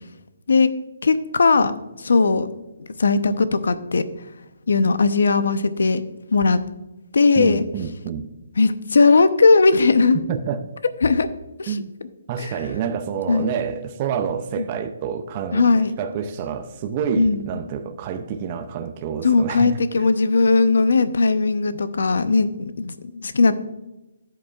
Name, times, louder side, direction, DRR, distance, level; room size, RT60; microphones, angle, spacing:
voice 1, 1.0-2.5 3.0-4.0 4.7-6.0 6.3-6.6 7.1-7.6 8.6-10.2 11.0-11.3 11.6-11.8 12.4-12.5 13.3-13.5 14.6-14.7 15.5-16.0 17.1-17.5 19.2-22.5 22.8-23.6, left 4 dB, 75° left, 12 dB, 0.7 m, -18 dB
voice 2, 7.4-8.3 10.3-10.6 11.7-11.9 12.3-19.8, right 7 dB, 25° right, 6 dB, 0.4 m, -28 dB
12.5 x 7.8 x 2.4 m, 1.0 s
hypercardioid pair, 175°, 0 cm